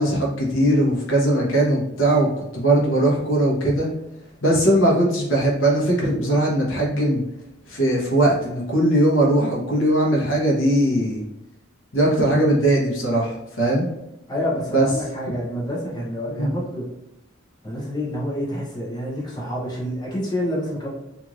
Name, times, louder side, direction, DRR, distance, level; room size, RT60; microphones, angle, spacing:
voice 1, 0.0-2.3 2.5-3.9 4.4-7.2 7.7-11.2 11.9-13.9 14.7-14.9 16.3-16.5, right 1 dB, 65° left, -2 dB, 0.9 m, -20 dB
voice 2, 14.3-16.9 17.6-20.9, equal, 20° left, -5 dB, 0.8 m, -28 dB
3.0 x 2.6 x 2.5 m, 0.88 s
head